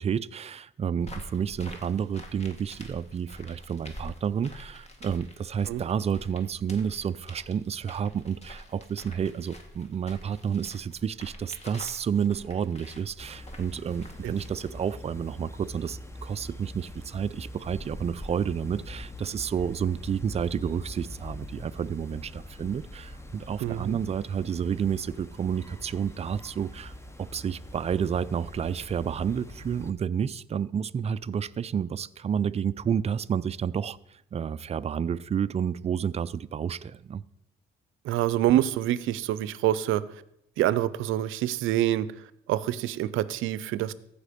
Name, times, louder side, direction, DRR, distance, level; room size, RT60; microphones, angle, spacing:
voice 1, 0.0-37.2, right 7 dB, 35° right, 15 dB, 0.4 m, -30 dB
sound 1, 1.0-14.9, left 1 dB, 35° left, 1.8 m, -47 dB
sound 2, 13.2-29.9, left 1 dB, 15° left, 0.8 m, -43 dB
voice 2, 23.6-24.0 38.0-40.0 40.6-42.1 42.5-43.9, right 13 dB, 90° right, 17 dB, 0.5 m, -26 dB
15.0 x 5.0 x 5.1 m, 0.79 s
cardioid pair, 90°, 20 cm